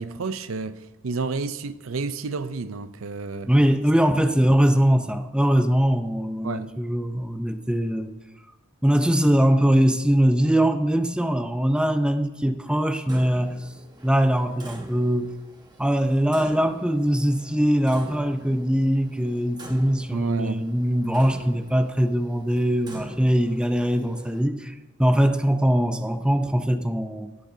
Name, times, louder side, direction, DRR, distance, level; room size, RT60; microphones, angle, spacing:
voice 1, 0.0-3.5 6.4-6.8 20.1-20.6, right 4 dB, 90° right, 0.6 m, -30 dB
voice 2, 3.5-8.1 8.8-13.7 14.0-15.3 15.8-27.3, equal, 5° right, 0.5 m, -22 dB
Clock, 13.1-24.4, right 1 dB, 20° right, 1.3 m, -45 dB
17.5 x 11.5 x 2.7 m
head